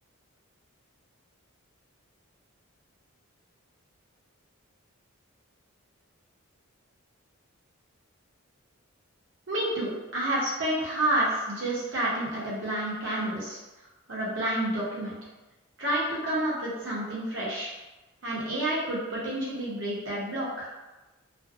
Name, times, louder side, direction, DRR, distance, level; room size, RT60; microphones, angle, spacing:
voice 1, 9.5-13.6 14.1-15.1 15.8-17.7 18.2-20.7, right 1 dB, 55° right, -6 dB, 0.7 m, -29 dB
2.5 x 2.1 x 2.4 m, 1.1 s
head